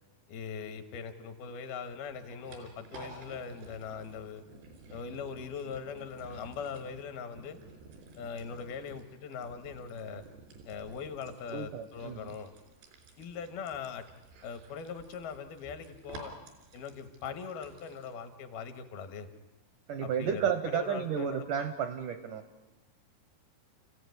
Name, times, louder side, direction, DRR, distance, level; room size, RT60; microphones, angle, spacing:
voice 1, 0.3-4.4 4.9-7.6 8.2-10.2 10.7-12.5 13.2-14.0 14.4-16.3 16.7-19.3 20.0-21.5, left 6 dB, 70° left, 9 dB, 3.2 m, -41 dB
sound 1, 1.9-18.1, right 2 dB, 90° right, 5.5 m, -53 dB
voice 2, 11.5-12.2 19.9-22.4, right 7 dB, 75° right, 9 dB, 2.0 m, -32 dB
29.5 x 15.5 x 9.6 m, 1.1 s
omnidirectional pair, 4.7 m